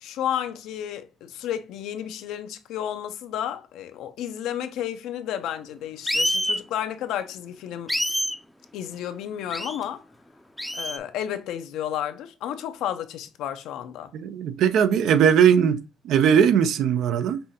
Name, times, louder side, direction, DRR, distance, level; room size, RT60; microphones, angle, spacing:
voice 1, 0.0-7.9 8.7-10.0 10.7-14.1, left 10 dB, 90° left, 0.5 m, -32 dB
sound 1, 6.1-6.6 7.9-8.4 9.5-9.8 10.6-11.0, equal, 5° left, 0.4 m, -26 dB
voice 2, 14.1-17.4, right 8 dB, 80° right, 0.5 m, -19 dB
5.4 x 2.7 x 2.7 m
cardioid pair, 90°, 0 cm